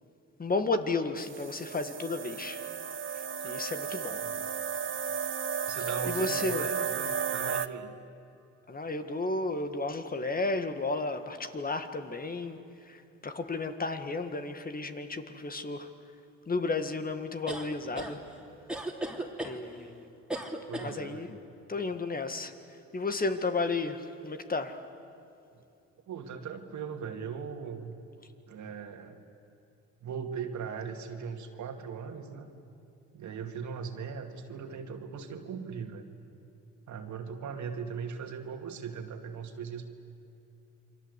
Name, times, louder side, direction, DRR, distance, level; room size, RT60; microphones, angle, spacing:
voice 1, 0.4-2.6 3.1-4.2 6.1-6.7 8.7-12.6 12.9-15.9 16.5-18.2 18.5-18.6 19.4-20.1 20.8-21.3 21.7-22.5 22.9-24.8, left 3 dB, 30° left, 8 dB, 1.8 m, -33 dB
sound 1, 1.2-7.7, right 6 dB, 40° right, 0.9 m, -34 dB
voice 2, 5.7-8.0 20.7-21.3 25.5-25.6 26.1-28.0 28.5-29.2 30.0-32.5 33.1-36.1 36.9-39.9, right 6 dB, 70° right, 5 dB, 2.5 m, -39 dB
sound 2, 17.5-18.1 18.7-19.6 20.3-20.9, right 1 dB, 5° right, 3.2 m, -35 dB
29.0 x 24.5 x 8.3 m, 2.6 s
cardioid pair, 90°, 30 cm